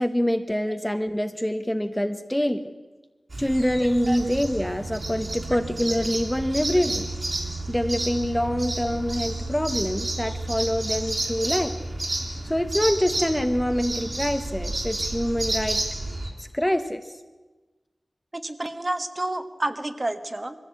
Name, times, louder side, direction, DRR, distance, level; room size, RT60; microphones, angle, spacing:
voice 1, 0.0-2.7 3.4-7.1 7.7-11.8 12.4-15.8 16.4-17.1, equal, 5° left, 8 dB, 0.9 m, -25 dB
sound 1, 3.3-16.3, right 2 dB, 50° right, 3.7 m, -31 dB
voice 2, 18.4-20.6, right 1 dB, 30° right, 8 dB, 1.3 m, -29 dB
22.0 x 15.0 x 8.3 m, 1.2 s
wide cardioid pair, 95°, 0 cm